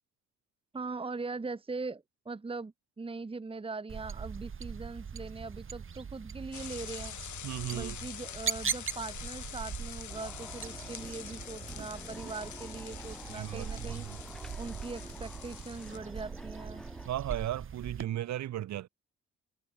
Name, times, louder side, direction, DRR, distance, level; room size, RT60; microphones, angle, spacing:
voice 1, 0.7-7.2 7.7-14.1 14.6-16.8, right 3 dB, 20° right, 1.2 m, -41 dB
sound 1, 3.9-18.1, right 6 dB, 45° right, 4.8 m, -41 dB
sound 2, 6.5-16.0, left 11 dB, 70° left, 6.5 m, -46 dB
voice 2, 7.4-8.0 13.3-14.2 17.0-18.9, right 13 dB, 65° right, 1.1 m, -36 dB
sound 3, 10.1-17.1, equal, ahead, 2.9 m, -49 dB
cardioid pair, 90°, 30 cm